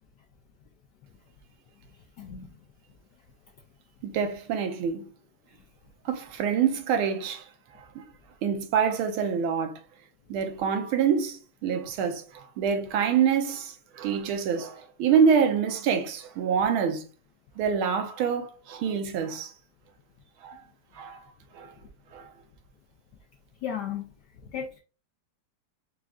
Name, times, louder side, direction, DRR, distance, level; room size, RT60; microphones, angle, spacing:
voice 1, 2.2-2.5 23.6-24.0 24.5-24.8, left 8 dB, 75° left, 0.9 m, -34 dB
voice 2, 4.0-5.1 6.0-7.5 7.8-8.0 8.4-9.8 10.3-17.0 17.6-19.5 20.4-20.6 20.9-21.2 21.5-21.7 22.1-22.3, right 7 dB, 80° right, 1.5 m, -26 dB
5.0 x 3.6 x 2.3 m
omnidirectional pair, 2.3 m